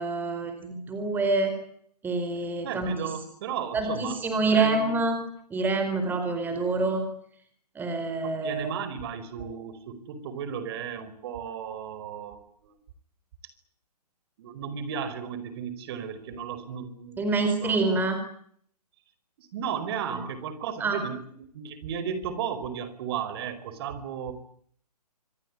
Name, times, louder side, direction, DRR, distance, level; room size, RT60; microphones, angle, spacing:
voice 1, 0.0-1.5 2.0-2.9 3.7-5.2 5.5-7.0 7.7-8.7 17.2-18.2 20.1-20.2 20.8-21.0, right 3 dB, 10° right, 6 dB, 4.5 m, -26 dB
voice 2, 2.6-4.2 4.5-4.9 8.2-12.7 14.4-17.8 19.4-24.3, right 7 dB, 35° right, 13 dB, 4.8 m, -35 dB
27.0 x 19.0 x 9.7 m, 0.63 s
hypercardioid pair, 150°, 21 cm